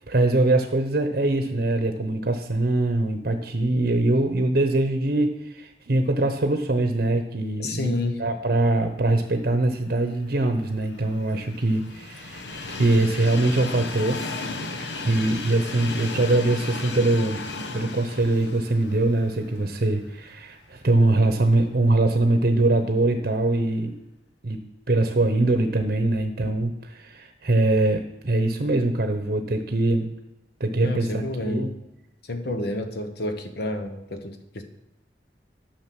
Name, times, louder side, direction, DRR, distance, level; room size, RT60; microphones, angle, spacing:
voice 1, 0.1-7.9 8.2-14.2 14.8-17.4 17.7-23.9 24.4-24.6 24.9-30.1 30.6-31.7, right 2 dB, 55° right, 6 dB, 0.8 m, -23 dB
voice 2, 7.6-8.2 30.8-31.8 32.3-34.6, left 1 dB, 65° left, 7 dB, 1.2 m, -29 dB
Train, 10.3-20.4 20.8-20.9 22.0-22.1, left 3 dB, 80° left, 1.0 m, -35 dB
9.7 x 6.5 x 6.0 m, 0.93 s
head